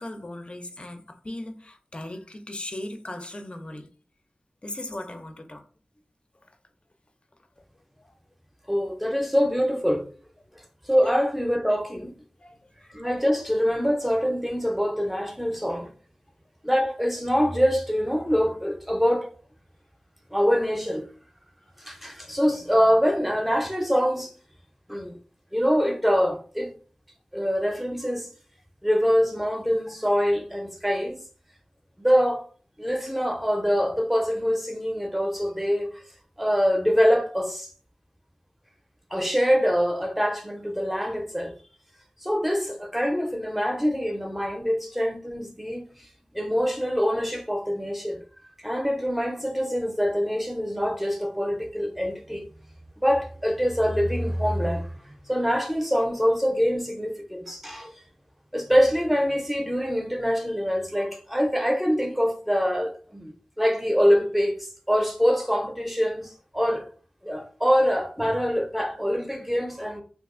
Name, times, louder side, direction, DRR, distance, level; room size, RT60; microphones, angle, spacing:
voice 1, 0.0-3.9 4.6-5.7 8.0-8.1 12.4-12.7, left 1 dB, 40° left, 0.5 m, -38 dB
voice 2, 8.7-10.1 10.8-12.1 12.9-15.9 16.6-19.3 20.3-21.1 21.8-24.3 24.9-25.2 25.5-26.7 27.3-28.3 28.8-31.2 32.0-32.4 32.8-36.0 36.4-37.7 39.1-41.5 42.2-48.2 48.6-52.5 53.0-57.9 58.5-66.9 67.2-70.0, equal, 5° right, 0.6 m, -24 dB
2.7 x 2.4 x 3.7 m
wide cardioid pair, 65°, 3 cm